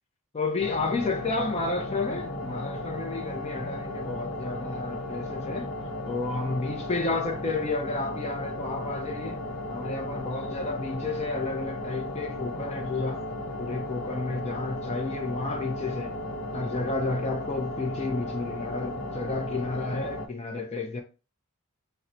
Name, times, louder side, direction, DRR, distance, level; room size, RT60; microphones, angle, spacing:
voice 1, 0.3-5.7 6.1-9.4 9.7-13.2 13.6-16.1 16.5-21.0, left 3 dB, 30° left, 0.4 m, -31 dB
sound 1, 0.6-20.3, left 1 dB, 65° left, 0.7 m, -35 dB
3.8 x 2.1 x 4.2 m
head